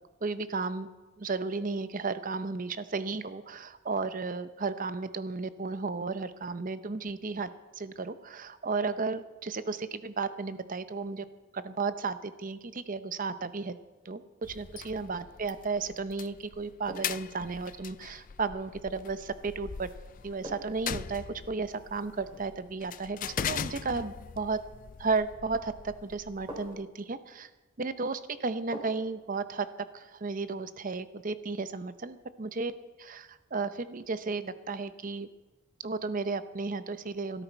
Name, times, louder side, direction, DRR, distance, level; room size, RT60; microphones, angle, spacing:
voice 1, 0.2-0.9 1.2-11.3 11.5-13.8 14.0-19.9 20.2-24.6 25.0-27.5 27.8-29.7 29.9-32.7 33.0-35.3 35.8-37.4, right 4 dB, 40° right, 12 dB, 0.7 m, -34 dB
sound 1, 14.4-26.8, left 8 dB, 40° left, 0.4 m, -41 dB
sound 2, 15.3-15.6 16.9-17.3 19.4-19.6 20.4-20.9 22.2-22.6 23.4-23.8 25.5-25.6 26.5-26.9 28.7-29.2 29.5-29.6, right 1 dB, 20° right, 3.3 m, -44 dB
15.5 x 13.5 x 4.5 m, 1.2 s
head